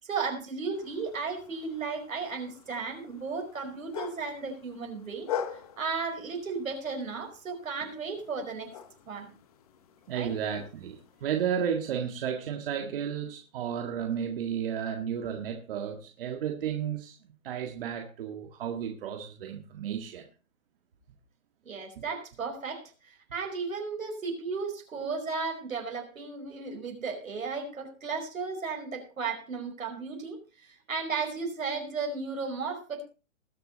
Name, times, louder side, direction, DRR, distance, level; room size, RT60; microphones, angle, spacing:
voice 1, 0.0-5.3 5.5-8.7 9.1-9.3 10.1-10.3 21.6-33.0, right 4 dB, 80° right, 5.0 m, -35 dB
sound 1, 0.7-11.2, left 9 dB, 30° left, 0.8 m, -44 dB
voice 2, 10.1-20.3, right 8 dB, 45° right, 1.9 m, -33 dB
20.5 x 6.8 x 4.0 m
hypercardioid pair, 150°, 40 cm